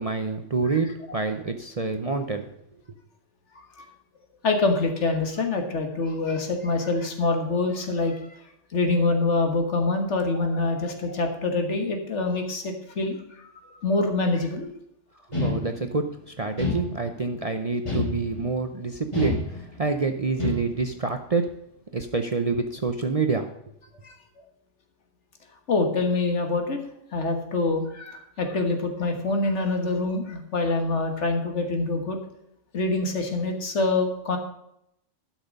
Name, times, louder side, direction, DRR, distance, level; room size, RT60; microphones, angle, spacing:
voice 1, 0.0-2.5 15.4-21.5 21.9-23.5, right 4 dB, 35° right, 6 dB, 0.6 m, -27 dB
voice 2, 3.6-3.9 4.4-8.2 8.7-14.7 24.0-24.2 25.7-32.2 32.7-34.4, left 3 dB, 65° left, 5 dB, 1.8 m, -25 dB
sound 1, 15.3-16.1 16.6-17.3 17.8-18.6 19.1-19.9 20.4-21.0, left 3 dB, 25° left, 3.3 m, -29 dB
12.0 x 6.2 x 5.3 m, 0.77 s
omnidirectional pair, 1.3 m